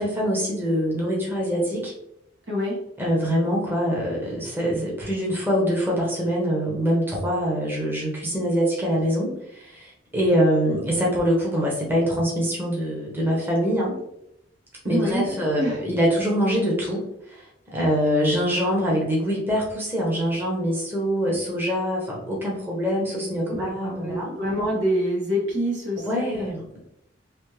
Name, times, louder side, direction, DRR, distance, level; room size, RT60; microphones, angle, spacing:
voice 1, 0.0-1.9 3.0-14.0 14.8-24.3 26.0-26.8, equal, 10° right, -4 dB, 0.9 m, -24 dB
voice 2, 2.5-2.8 14.8-15.8 23.5-26.5, equal, 75° right, -4 dB, 1.5 m, -26 dB
3.4 x 2.6 x 3.1 m, 0.78 s
head